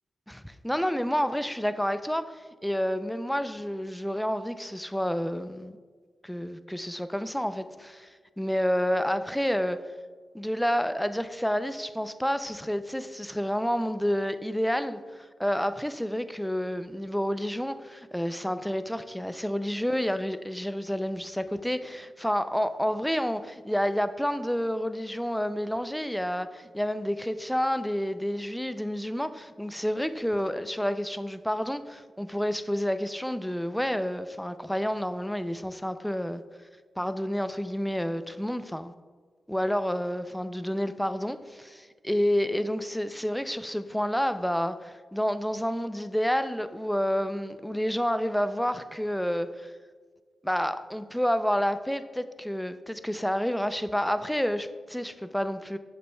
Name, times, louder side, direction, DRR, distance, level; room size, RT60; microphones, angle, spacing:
voice 1, 0.3-2.3 2.6-5.8 6.2-8.1 8.4-9.8 10.3-36.4 37.0-38.9 39.5-49.7 50.4-55.8, equal, 5° left, 0.4 m, -29 dB
8.2 x 6.8 x 2.3 m
supercardioid pair, 40°, 0 cm